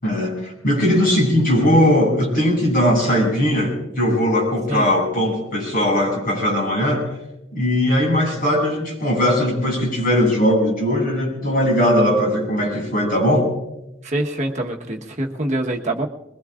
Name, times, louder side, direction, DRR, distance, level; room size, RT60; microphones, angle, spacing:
voice 1, 0.0-7.1 7.5-13.5, equal, 45° left, -2 dB, 7.6 m, -19 dB
voice 2, 14.0-16.1, right 1 dB, 35° right, 1 dB, 1.3 m, -25 dB
24.0 x 21.5 x 2.5 m, 0.91 s
head